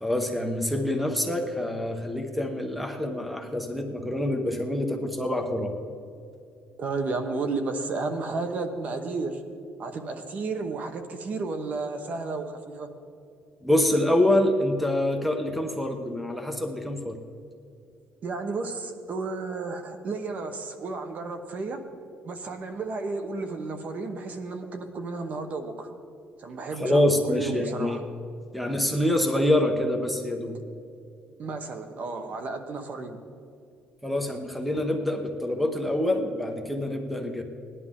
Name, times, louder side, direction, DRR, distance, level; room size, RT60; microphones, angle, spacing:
voice 1, 0.0-5.7 13.6-17.2 26.8-28.0 28.5-30.6 34.0-37.4, left 1 dB, ahead, 4 dB, 1.0 m, -26 dB
voice 2, 6.8-9.4 9.8-12.9 18.2-21.8 22.2-25.9 26.4-28.0 31.4-33.2, right 3 dB, 45° right, 7 dB, 1.1 m, -32 dB
18.5 x 11.0 x 3.7 m, 2.5 s
cardioid pair, 150°, 4 cm